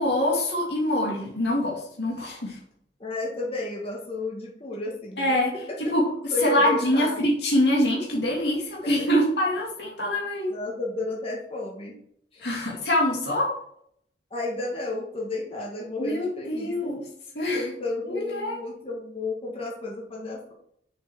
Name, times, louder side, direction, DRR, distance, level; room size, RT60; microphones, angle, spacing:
voice 1, 0.0-2.6 5.2-5.5 5.8-10.5 12.4-13.5 16.0-17.0 17.3-17.6 18.1-18.6, left 1 dB, 70° left, -3 dB, 2.3 m, -24 dB
voice 2, 3.0-5.4 6.3-7.2 8.8-8.9 10.5-12.0 12.3-12.5 14.3-17.0 17.5-20.5, left 2 dB, 35° left, -3 dB, 2.1 m, -32 dB
6.5 x 6.5 x 6.2 m, 0.71 s
head